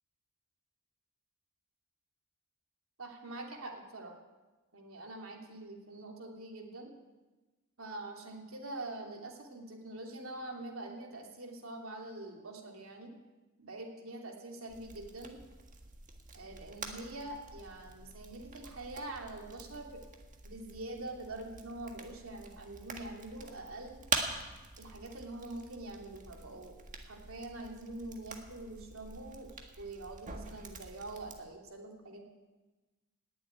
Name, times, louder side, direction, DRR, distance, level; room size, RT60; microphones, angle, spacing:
voice 1, 3.0-4.1 4.7-6.9 7.8-13.1 13.6-15.4 16.3-20.0 20.4-24.0 24.8-26.8 27.1-29.5 29.8-32.2, right 2 dB, 90° right, 1 dB, 3.0 m, -44 dB
sound 1, 14.7-31.4, right 4 dB, 40° right, 1.6 m, -45 dB
19.0 x 7.7 x 9.4 m, 1.2 s
head